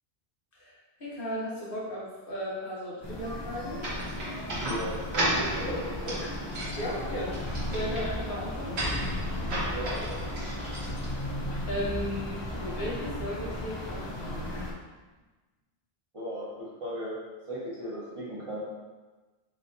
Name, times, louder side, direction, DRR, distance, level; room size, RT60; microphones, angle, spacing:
voice 1, 0.5-3.8 6.8-7.4 7.7-8.8 11.7-14.6, equal, 55° left, -5 dB, 1.2 m, -35 dB
sound 1, 3.0-14.7, left 1 dB, 30° left, 0.5 m, -35 dB
sound 2, 3.8-11.5, right 1 dB, 75° right, 1.5 m, -35 dB
voice 2, 4.6-6.2 6.8-6.9 9.7-10.2 16.1-17.1 17.5-18.6, equal, 30° right, -9 dB, 1.6 m, -36 dB
5.0 x 3.3 x 2.8 m, 1.2 s
omnidirectional pair, 1.1 m